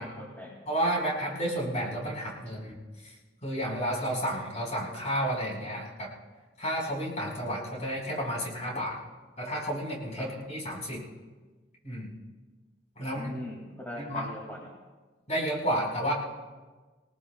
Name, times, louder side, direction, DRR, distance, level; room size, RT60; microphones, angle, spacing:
voice 1, 0.0-0.6 10.2-10.3 13.0-14.7, left 1 dB, 10° left, -4 dB, 2.3 m, -41 dB
voice 2, 0.6-2.8 3.0-3.1 3.4-6.1 6.6-9.0 9.4-11.0 11.8-12.1 13.0-13.4 14.0-14.3 15.3-16.1, equal, 40° left, -3 dB, 4.9 m, -31 dB
27.0 x 18.5 x 2.3 m, 1.3 s
head